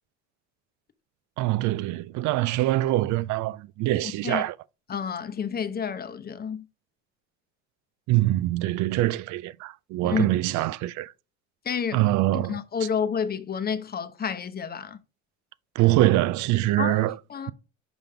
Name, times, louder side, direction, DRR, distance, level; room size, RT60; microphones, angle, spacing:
voice 1, 1.4-4.5 8.1-11.1 11.9-12.6 15.8-17.2, right 16 dB, 70° right, 0.4 m, -24 dB
voice 2, 4.0-4.4 4.9-6.7 10.0-10.3 11.6-12.0 12.3-15.0 16.8-17.0 17.3-17.5, left 7 dB, 30° left, 0.8 m, -30 dB
6.1 x 5.2 x 3.4 m
cardioid pair, 100°, 31 cm